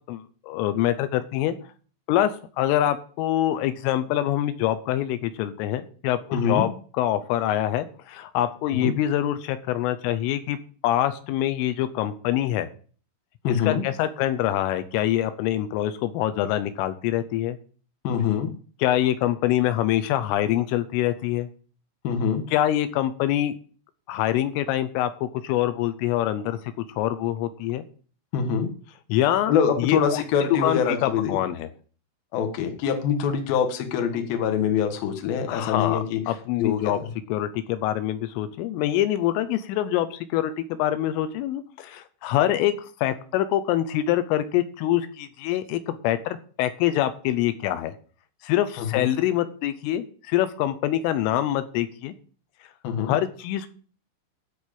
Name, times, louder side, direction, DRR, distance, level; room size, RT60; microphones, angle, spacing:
voice 1, 0.1-1.6 2.1-2.3 2.6-6.7 7.0-10.6 10.8-12.7 13.5-17.6 18.8-21.5 22.5-23.5 24.1-26.6 27.0-27.8 29.1-30.2 30.6-31.7 35.5-37.0 37.3-47.9 48.4-52.1 53.1-53.7, left 12 dB, 85° left, 11 dB, 3.4 m, -25 dB
voice 2, 6.3-6.7 8.7-9.0 13.4-13.8 18.0-18.5 22.0-22.5 28.3-28.7 29.5-31.4 32.3-37.1 48.8-49.1 52.8-53.2, left 7 dB, 60° left, 6 dB, 2.8 m, -25 dB
13.0 x 4.6 x 8.7 m, 0.41 s
omnidirectional pair, 5.7 m